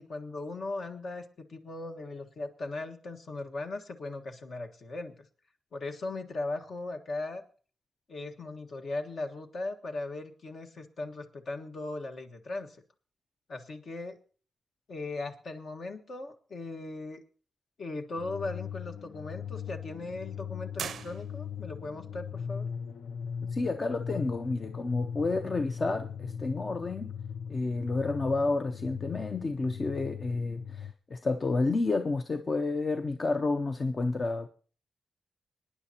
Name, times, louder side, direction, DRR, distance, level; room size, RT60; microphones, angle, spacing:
voice 1, 0.0-5.2 5.7-7.4 8.1-12.8 13.5-14.2 14.9-17.2 17.8-22.6, left 2 dB, 55° left, 1.4 m, -38 dB
sound 1, 18.1-30.9, left 7 dB, 75° left, 0.5 m, -39 dB
sound 2, 20.8-21.8, right 8 dB, 85° right, 0.5 m, -40 dB
voice 2, 23.5-27.1 27.5-34.5, left 3 dB, 35° left, 0.6 m, -30 dB
25.5 x 9.9 x 2.9 m
wide cardioid pair, 130°, 0 cm